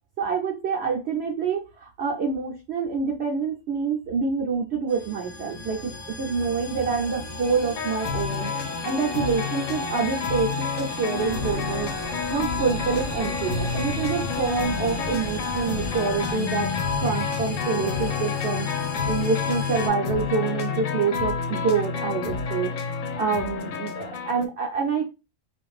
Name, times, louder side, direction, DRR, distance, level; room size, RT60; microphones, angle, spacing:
voice 1, 0.2-5.9 6.2-8.5 8.8-11.9 12.3-16.7 17.0-18.7 19.1-25.0, right 5 dB, 65° right, 1 dB, 0.7 m, -27 dB
sound 1, 4.9-19.9, left 2 dB, 45° left, 0.5 m, -35 dB
sound 2, 7.8-24.5, left 6 dB, 75° left, 0.9 m, -29 dB
sound 3, 11.2-16.3, equal, 20° right, 0.6 m, -39 dB
2.5 x 2.4 x 3.1 m, 0.27 s
omnidirectional pair, 1.4 m